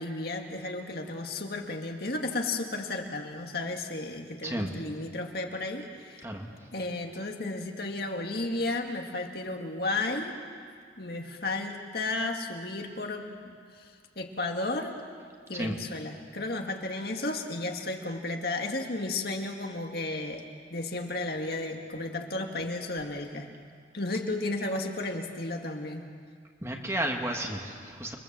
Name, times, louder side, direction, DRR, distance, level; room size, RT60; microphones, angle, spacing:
voice 1, 0.0-6.2 6.7-10.4 11.0-15.0 15.5-20.4 20.7-23.5 23.9-26.0, left 2 dB, 55° left, 3 dB, 2.1 m, -33 dB
voice 2, 4.4-4.7 6.2-6.5 15.5-15.7 26.6-28.2, right 1 dB, 15° right, 1 dB, 2.1 m, -32 dB
29.5 x 23.5 x 7.6 m, 2.1 s
head